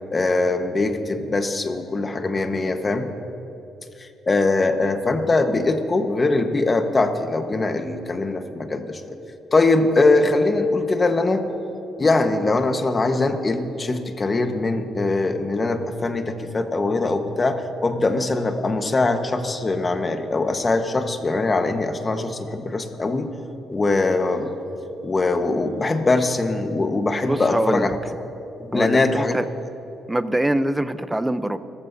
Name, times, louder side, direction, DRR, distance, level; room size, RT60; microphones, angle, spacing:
voice 1, 0.1-3.1 4.0-9.0 9.5-11.4 12.0-23.3 23.7-24.5 25.0-27.9 28.6-29.3, left 3 dB, 30° left, 6 dB, 1.3 m, -22 dB
voice 2, 27.2-27.9 28.7-29.4 30.1-31.6, right 1 dB, 10° right, 12 dB, 0.7 m, -23 dB
29.5 x 14.0 x 2.8 m, 2.9 s
cardioid pair, 90°, 0 cm